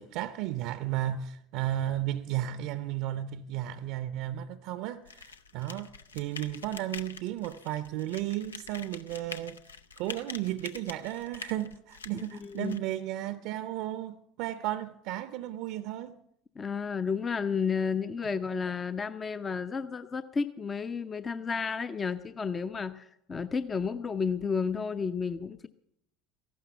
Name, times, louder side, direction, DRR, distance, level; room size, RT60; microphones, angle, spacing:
voice 1, 0.0-9.6 10.0-16.1, right 13 dB, 60° right, 0.6 m, -34 dB
sound 1, 5.0-12.8, left 5 dB, 85° left, 0.6 m, -46 dB
voice 2, 12.1-12.8 16.6-25.7, left 5 dB, 25° left, 0.6 m, -32 dB
15.0 x 12.0 x 6.9 m
figure-of-eight pair, 70°, 0 cm